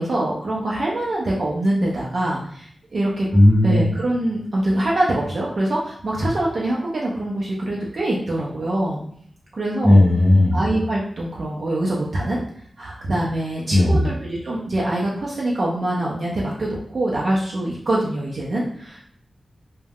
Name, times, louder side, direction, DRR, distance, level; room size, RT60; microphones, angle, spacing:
voice 1, 0.0-3.3 3.6-9.0 9.5-10.0 10.5-12.4 12.8-19.1, right 1 dB, 60° right, -5 dB, 0.5 m, -24 dB
voice 2, 3.3-3.9 9.8-10.6 13.7-14.0, left 1 dB, 30° right, -3 dB, 0.8 m, -14 dB
2.2 x 2.1 x 3.4 m, 0.64 s
wide cardioid pair, 80°, 0 cm